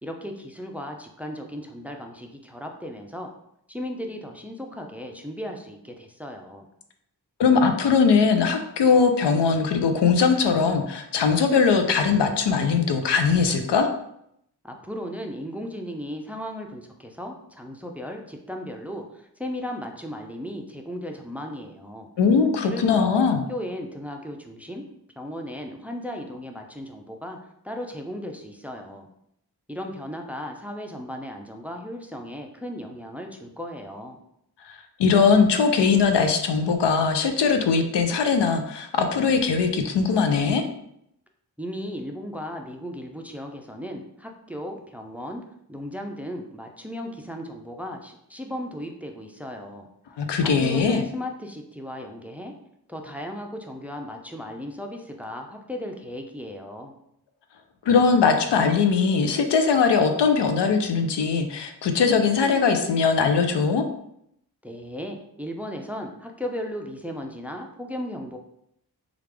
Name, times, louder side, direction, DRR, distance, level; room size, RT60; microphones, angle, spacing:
voice 1, 0.0-3.3 3.7-6.7 14.6-22.1 22.6-24.8 25.2-27.4 27.6-29.1 29.7-34.2 41.6-45.4 45.7-49.9 50.4-52.5 52.9-56.9 64.6-68.4, equal, 5° right, 3 dB, 0.4 m, -36 dB
voice 2, 7.4-13.9 22.2-23.4 34.7-40.6 50.2-51.0 57.9-63.9, left 5 dB, 85° left, 6 dB, 0.5 m, -20 dB
3.3 x 2.4 x 3.3 m, 0.75 s
cardioid pair, 45°, 41 cm